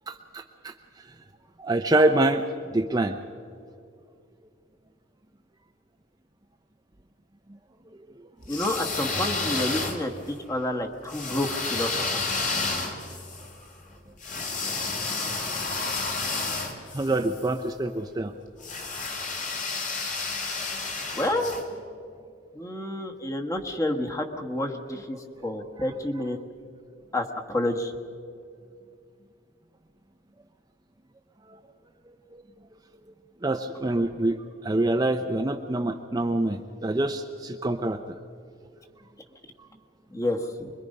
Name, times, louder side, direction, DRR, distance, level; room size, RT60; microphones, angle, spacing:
voice 1, 0.1-0.7 1.6-2.4 2.7-3.1 16.9-18.3 33.4-34.4 34.6-38.0, right 2 dB, 20° right, 5 dB, 0.6 m, -25 dB
sound 1, 8.4-10.3 11.1-17.5 18.6-21.6, left 3 dB, 40° left, 2.4 m, -31 dB
voice 2, 8.5-10.1 10.5-12.2 21.1-21.6 22.5-26.4 27.1-27.9 40.1-40.7, left 1 dB, 15° left, 3 dB, 1.3 m, -29 dB
25.0 x 22.0 x 5.4 m, 2.3 s
head